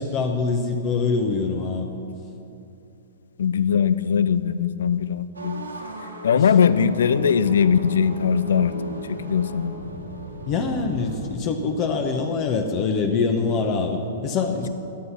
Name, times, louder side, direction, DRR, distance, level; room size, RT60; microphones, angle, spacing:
voice 1, 0.0-1.9 6.3-6.4 10.5-14.7, left 4 dB, 35° left, 4 dB, 1.1 m, -24 dB
voice 2, 3.4-5.6 6.2-8.7 9.1-9.7, left 7 dB, 70° left, 15 dB, 0.5 m, -20 dB
sound 1, 5.3-11.3, right 2 dB, 90° right, 1.8 m, -36 dB
14.5 x 9.6 x 5.8 m, 2.8 s
figure-of-eight pair, 110°, 0 cm